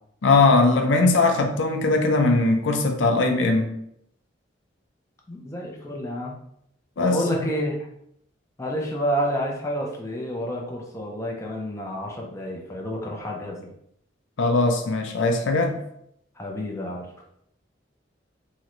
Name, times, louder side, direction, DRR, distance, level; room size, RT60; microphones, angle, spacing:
voice 1, 0.2-3.7 7.0-7.2 14.4-15.8, left 3 dB, 80° left, 4 dB, 0.4 m, -20 dB
voice 2, 5.3-6.4 7.0-7.8 8.6-13.7 16.4-17.1, equal, 15° left, -1 dB, 0.4 m, -29 dB
3.7 x 2.1 x 2.9 m, 0.74 s
head